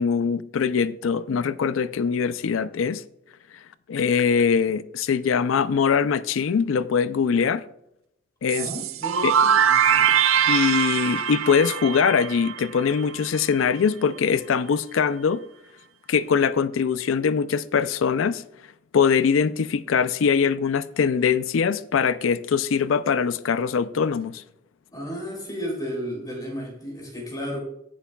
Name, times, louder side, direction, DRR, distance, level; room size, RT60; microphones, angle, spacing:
voice 1, 0.0-3.0 3.9-7.6 8.4-8.7 9.2-9.3 10.5-15.4 16.1-18.4 18.9-24.4, left 6 dB, 80° left, 0.4 m, -22 dB
voice 2, 8.5-10.4 24.9-27.6, equal, 20° left, 3.1 m, -34 dB
sound 1, 8.5-13.2, right 8 dB, 90° right, 0.5 m, -22 dB
16.0 x 6.8 x 2.3 m
head